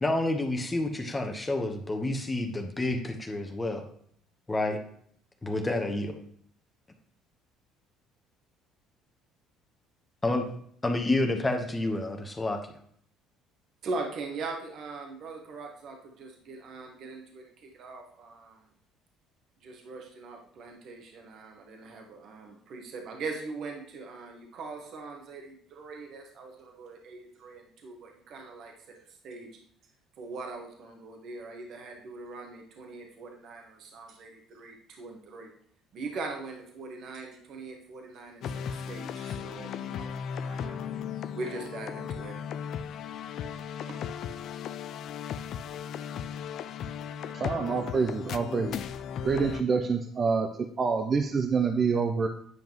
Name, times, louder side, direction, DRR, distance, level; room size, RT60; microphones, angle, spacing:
voice 1, 0.0-3.9 4.5-4.8 5.4-6.1 10.2-10.5 10.8-12.6, left 2 dB, 20° left, 5 dB, 1.0 m, -29 dB
voice 2, 13.8-18.7 19.6-29.0 29.2-29.5 30.2-35.5 35.9-40.8 41.3-42.4, right 3 dB, 60° right, 2 dB, 1.3 m, -41 dB
sound 1, 38.4-49.6, left 8 dB, 60° left, 0.4 m, -36 dB
voice 3, 47.3-48.8 49.2-52.3, right 5 dB, 40° right, 5 dB, 0.6 m, -27 dB
9.3 x 5.2 x 3.0 m, 0.63 s
supercardioid pair, 85°, 0 cm